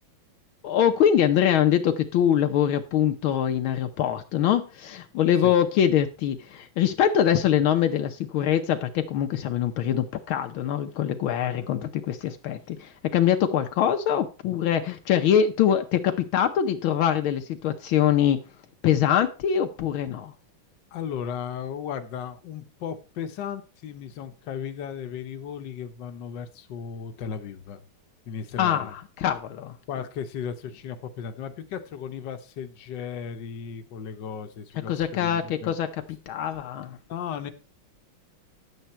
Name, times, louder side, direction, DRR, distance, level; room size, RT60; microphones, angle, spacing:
voice 1, 0.6-18.4 18.8-20.3 28.6-29.8 34.9-35.9 36.3-37.0, left 9 dB, 80° left, 1.6 m, -23 dB
voice 2, 11.6-11.9 20.9-27.8 28.2-28.9 29.9-35.7 37.1-37.5, left 7 dB, 60° left, 1.6 m, -35 dB
10.5 x 8.3 x 4.3 m
omnidirectional pair, 2.3 m